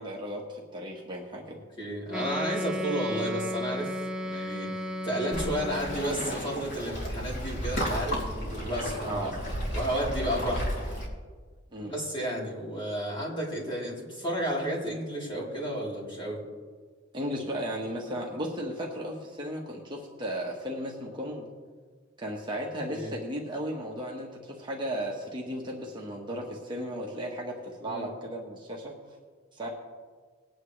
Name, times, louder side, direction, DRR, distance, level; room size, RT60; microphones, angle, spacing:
voice 1, 0.0-1.6 9.0-9.4 11.7-11.9 17.1-21.5 22.2-29.0 29.5-29.7, equal, 25° right, -2 dB, 1.4 m, -35 dB
voice 2, 1.8-3.9 4.2-9.4 9.7-10.7 11.8-16.4 22.9-23.2 27.9-28.1, equal, 25° left, -5 dB, 3.7 m, -32 dB
Wind instrument woodwind instrument, 2.1-6.2, equal, 5° right, 0.8 m, -34 dB
Waves surf, 5.3-11.1, equal, 60° left, 3.0 m, -33 dB
19.5 x 9.4 x 3.3 m, 1.5 s
head